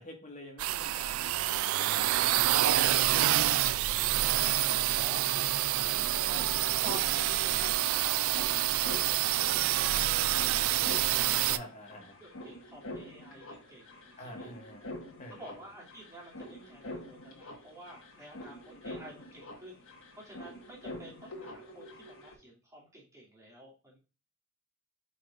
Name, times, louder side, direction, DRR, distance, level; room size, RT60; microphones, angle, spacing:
voice 1, 0.0-5.1 5.8-5.9 7.5-7.7 9.9-10.1 11.5-12.2 14.2-15.6, left 1 dB, 35° left, 2 dB, 1.6 m, -49 dB
sound 1, 0.6-11.6, right 14 dB, 65° right, 0.3 m, -27 dB
voice 2, 4.3-6.6 6.8-10.8 11.3-14.5 15.3-19.9 20.1-24.0, equal, 15° right, -5 dB, 2.6 m, -50 dB
sound 2, 5.6-22.3, left 1 dB, 65° left, 1.5 m, -46 dB
8.6 x 5.2 x 2.5 m, 0.33 s
head